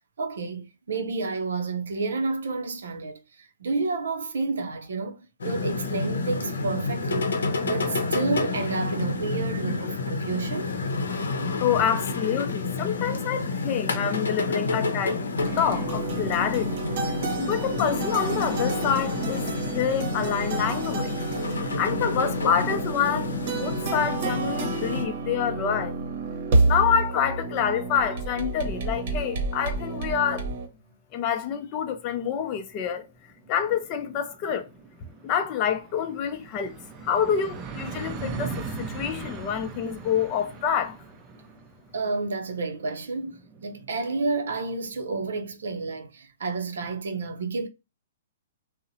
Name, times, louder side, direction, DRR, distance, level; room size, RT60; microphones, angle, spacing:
voice 1, 0.2-7.3 7.6-10.8 41.9-47.7, right 3 dB, 85° right, 0.5 m, -30 dB
sound 1, 5.4-25.1, left 3 dB, 90° left, 0.6 m, -29 dB
voice 2, 11.6-15.2 15.6-16.8 17.4-19.4 19.7-21.1 21.5-26.0 26.6-30.5 31.1-33.0 33.5-34.7 35.2-36.8 37.0-41.0, left 8 dB, 35° left, 0.5 m, -27 dB
sound 2, 15.4-30.7, right 3 dB, 55° right, 0.8 m, -29 dB
sound 3, 33.0-33.1 33.3-44.7, right 4 dB, 20° right, 0.4 m, -40 dB
2.7 x 2.0 x 2.6 m
hypercardioid pair, 140°, 0 cm